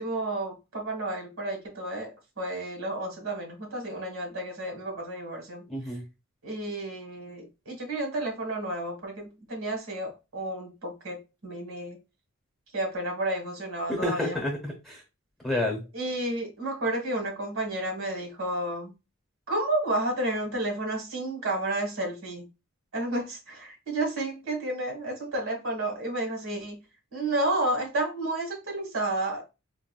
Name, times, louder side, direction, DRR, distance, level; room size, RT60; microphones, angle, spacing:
voice 1, 0.0-5.6 6.4-11.2 11.4-12.0 12.7-14.4 15.9-18.9 19.5-22.5 22.9-26.8 27.1-29.4, right 1 dB, 75° right, 1.4 m, -31 dB
voice 2, 5.7-6.0 13.9-15.0 15.4-15.8, left 1 dB, ahead, 0.9 m, -29 dB
3.9 x 2.5 x 2.2 m
head